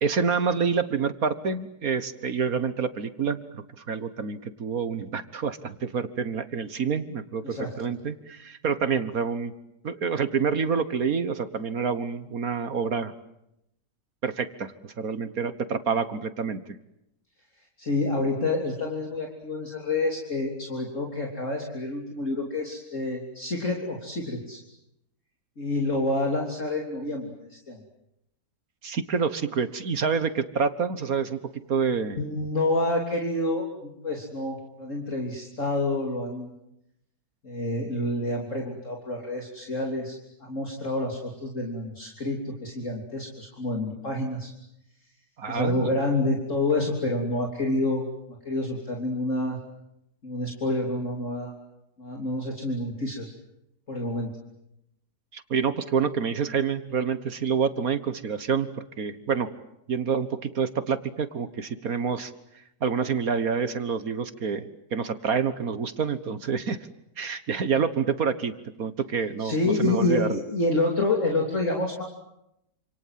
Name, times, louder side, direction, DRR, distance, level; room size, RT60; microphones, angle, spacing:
voice 1, 0.0-9.5 9.8-13.1 14.2-16.6 28.8-31.4 31.7-32.2 45.4-45.9 55.3-59.5 59.9-62.3 62.8-66.8 67.2-68.5 68.8-70.3, right 6 dB, 60° right, 12 dB, 1.7 m, -27 dB
voice 2, 17.8-24.6 25.6-27.8 32.2-36.5 37.4-44.5 45.5-48.1 48.5-49.6 50.2-51.5 52.0-53.3 53.9-54.3 69.4-72.0, left 2 dB, 45° left, 1 dB, 3.8 m, -28 dB
28.5 x 27.0 x 7.6 m, 0.82 s
omnidirectional pair, 1.8 m